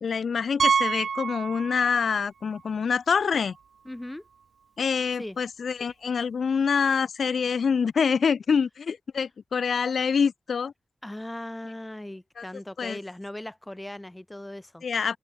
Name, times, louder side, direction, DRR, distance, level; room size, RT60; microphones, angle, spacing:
voice 1, 0.0-3.6 4.8-10.7 12.4-12.5 12.8-13.0 14.8-15.2, left 6 dB, 80° left, 0.5 m, -26 dB
Piano, 0.6-2.2 2.5-2.6 3.2-3.3 3.6-3.7 5.7-5.8, right 6 dB, 85° right, 0.4 m, -27 dB
voice 2, 3.8-4.2 5.2-5.4 11.0-14.8, left 1 dB, 10° left, 1.2 m, -38 dB
wide cardioid pair, 115°, 0 cm